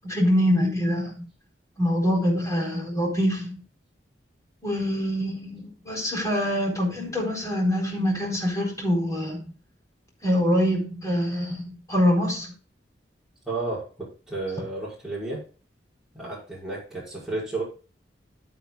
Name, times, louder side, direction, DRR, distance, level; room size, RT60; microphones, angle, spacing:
voice 1, 0.0-1.1 1.8-3.6 4.6-9.5 10.2-12.5, equal, 20° left, 0 dB, 4.1 m, -24 dB
voice 2, 13.5-15.4 16.1-17.6, right 2 dB, 5° right, -7 dB, 6.1 m, -32 dB
14.5 x 8.0 x 2.3 m, 0.36 s
head